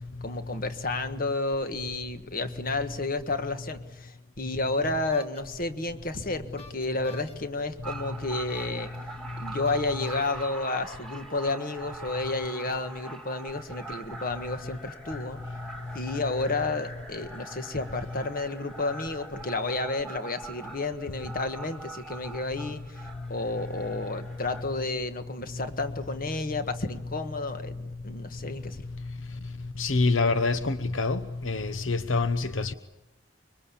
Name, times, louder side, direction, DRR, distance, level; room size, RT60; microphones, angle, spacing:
voice 1, 0.2-8.9 9.4-15.4 15.9-27.8 28.0-28.8, left 2 dB, 45° left, 1.5 m, -31 dB
sound 1, 5.1-5.4 6.6-7.3 8.5-9.0 9.6-10.3 11.3-11.4 12.2-12.6, left 3 dB, 30° left, 2.4 m, -49 dB
sound 2, 7.8-24.6, right 3 dB, 5° left, 2.1 m, -43 dB
voice 2, 29.8-31.2 31.5-32.7, left 3 dB, 75° left, 0.9 m, -25 dB
25.5 x 23.5 x 8.6 m
head